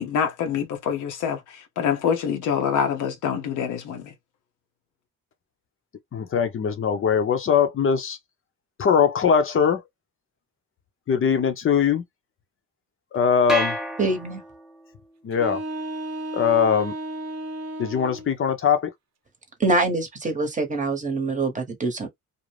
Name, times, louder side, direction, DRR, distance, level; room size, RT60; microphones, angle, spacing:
voice 1, 0.0-4.1, left 7 dB, 85° left, 0.8 m, -26 dB
voice 2, 6.1-8.2 8.8-9.8 11.1-12.0 13.1-13.8 15.2-15.6 16.3-16.9 17.8-18.9, left 7 dB, 45° left, 0.7 m, -21 dB
sound 1, 13.5-14.9, equal, ahead, 0.6 m, -29 dB
voice 3, 14.0-14.4 19.6-22.1, right 3 dB, 25° right, 0.9 m, -24 dB
sound 2, 15.3-18.3, right 1 dB, 60° right, 0.7 m, -33 dB
2.6 x 2.1 x 3.2 m
cardioid pair, 90°, 30 cm